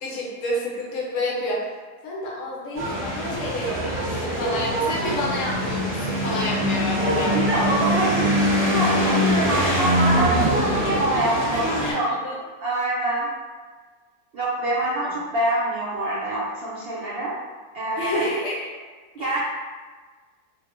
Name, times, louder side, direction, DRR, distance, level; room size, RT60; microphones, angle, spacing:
voice 1, 0.0-1.6 2.0-7.4 9.5-9.9 11.5-12.0 12.2-12.3 15.0-15.1 18.0-18.7 19.2-19.3, left 1 dB, 70° left, -4 dB, 0.9 m, -29 dB
sound 1, 2.8-11.9, equal, 15° right, 0.4 m, -23 dB
voice 2, 7.3-13.3 14.3-17.3 17.7-18.2 19.1-19.4, right 2 dB, 75° right, -7 dB, 0.5 m, -25 dB
2.4 x 2.0 x 2.9 m, 1.4 s
omnidirectional pair, 1.5 m